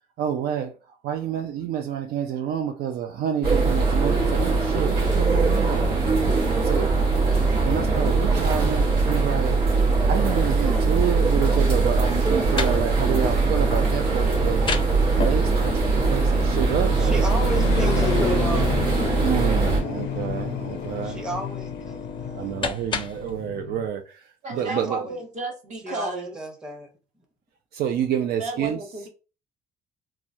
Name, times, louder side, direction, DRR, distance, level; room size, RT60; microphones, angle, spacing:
voice 1, 0.2-5.9 6.6-6.9 7.6-9.6 10.1-14.6 15.1-17.3 19.2-21.3 22.3-24.0 24.5-25.1 27.7-28.8, right 9 dB, 65° right, 0.4 m, -28 dB
sound 1, 3.4-19.8, right 3 dB, 85° right, 1.1 m, -21 dB
sound 2, 7.2-23.9, left 9 dB, 90° left, 0.5 m, -35 dB
sound 3, 12.1-23.3, left 4 dB, 30° left, 0.5 m, -35 dB
voice 2, 16.9-19.0 21.0-22.5 24.5-25.2 25.8-26.9, right 1 dB, 5° right, 0.8 m, -33 dB
voice 3, 24.4-26.3 28.4-29.1, right 2 dB, 45° right, 1.0 m, -33 dB
3.0 x 2.3 x 2.5 m
cardioid pair, 110°, 17 cm